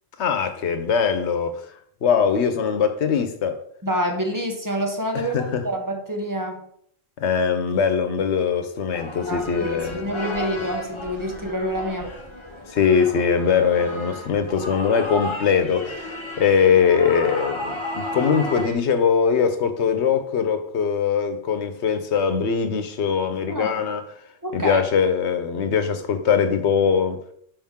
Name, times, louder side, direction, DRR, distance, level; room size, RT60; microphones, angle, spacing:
voice 1, 0.2-1.6 2.0-3.6 5.1-5.7 7.2-10.1 12.7-24.0 24.5-27.2, left 6 dB, 85° left, 8 dB, 1.1 m, -21 dB
voice 2, 3.8-6.7 9.3-12.1 23.5-23.7 24.4-24.8, equal, 20° right, 2 dB, 0.9 m, -27 dB
sound 1, 8.9-18.7, left 1 dB, 25° left, 1.1 m, -33 dB
5.8 x 5.1 x 3.6 m, 0.66 s
omnidirectional pair, 1.1 m